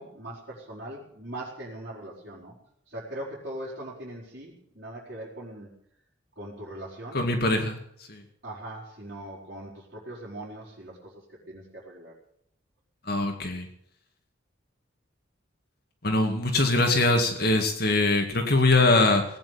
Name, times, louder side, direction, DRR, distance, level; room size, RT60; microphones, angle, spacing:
voice 1, 0.0-2.5 2.9-5.7 6.4-7.3 8.4-12.1, right 1 dB, 50° right, -8 dB, 4.9 m, -40 dB
voice 2, 7.1-7.8 8.1-8.2 13.1-13.7 16.0-19.3, left 2 dB, 50° left, 4 dB, 2.1 m, -22 dB
18.5 x 9.2 x 8.5 m, 0.70 s
head